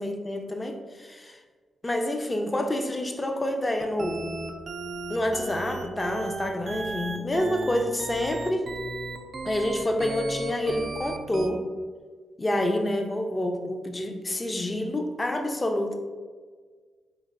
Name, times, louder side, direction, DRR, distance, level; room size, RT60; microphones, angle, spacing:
voice 1, 0.0-1.4 1.8-4.3 5.1-8.7 9.4-11.6 12.4-16.0, left 1 dB, 25° left, 5 dB, 0.4 m, -28 dB
sound 1, 3.8-11.5, right 3 dB, 50° right, 0.3 m, -35 dB
3.7 x 3.2 x 2.3 m, 1.5 s
cardioid pair, 65°, 0 cm